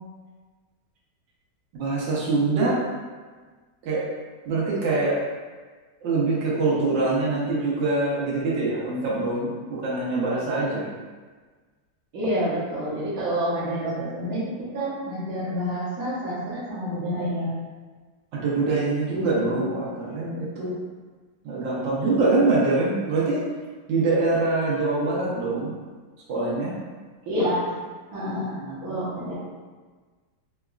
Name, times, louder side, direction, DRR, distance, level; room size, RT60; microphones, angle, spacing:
voice 1, 1.7-2.8 3.8-4.1 4.4-5.2 6.0-9.5 9.8-10.9 18.3-20.7 21.4-23.4 23.9-25.7 26.3-26.7 28.4-29.0, right 3 dB, 85° right, -7 dB, 1.4 m, -24 dB
voice 2, 12.1-17.5 19.2-19.6 27.3-27.7 28.1-29.4, equal, 60° right, -8 dB, 1.4 m, -28 dB
3.9 x 2.3 x 2.3 m, 1.4 s
omnidirectional pair, 1.9 m